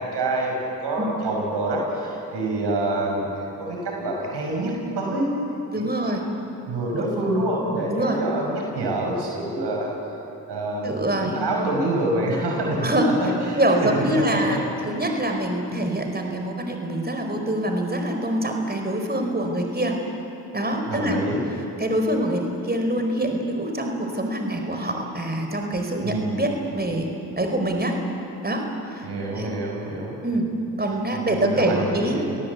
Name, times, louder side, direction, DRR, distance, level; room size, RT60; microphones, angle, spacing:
voice 1, 0.0-5.3 5.7-6.3 6.7-9.9 10.5-14.6 14.9-15.0 20.9-21.4 26.0-26.4 29.0-30.2 31.1-32.2, right 1 dB, 75° right, 0 dB, 5.9 m, -27 dB
voice 2, 5.7-6.2 7.9-8.2 10.8-11.4 12.8-13.1 13.6-14.6 14.8-20.0 20.5-21.2 21.8-28.0 28.4-29.1 29.3-29.5 30.2-30.5 30.8-32.2, right 1 dB, 25° right, 3 dB, 4.6 m, -25 dB
29.5 x 18.5 x 8.3 m, 3.0 s
supercardioid pair, 40°, 41 cm